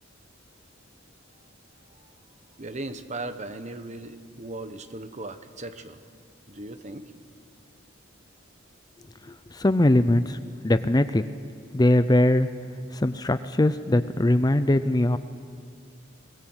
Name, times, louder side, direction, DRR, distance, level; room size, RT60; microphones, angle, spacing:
voice 1, 2.6-6.0 6.5-7.1, right 2 dB, 35° right, 9 dB, 1.2 m, -38 dB
voice 2, 9.5-10.4 10.6-11.3 11.7-12.5 12.9-15.2, left 1 dB, 20° left, 12 dB, 0.5 m, -21 dB
23.0 x 21.0 x 8.0 m, 2.2 s
head